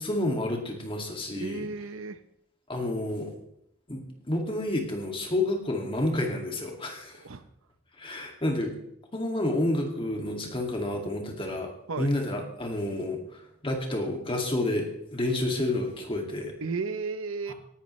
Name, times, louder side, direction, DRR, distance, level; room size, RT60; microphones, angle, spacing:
voice 1, 0.0-1.7 2.7-3.3 3.9-7.2 8.0-8.7 9.1-16.6 17.5-17.6, left 1 dB, 25° left, 2 dB, 2.2 m, -30 dB
voice 2, 1.3-2.2 7.2-7.4 10.5-10.6 11.9-12.1 16.6-17.5, right 4 dB, 75° right, 12 dB, 0.7 m, -34 dB
18.0 x 11.5 x 3.2 m, 0.79 s
head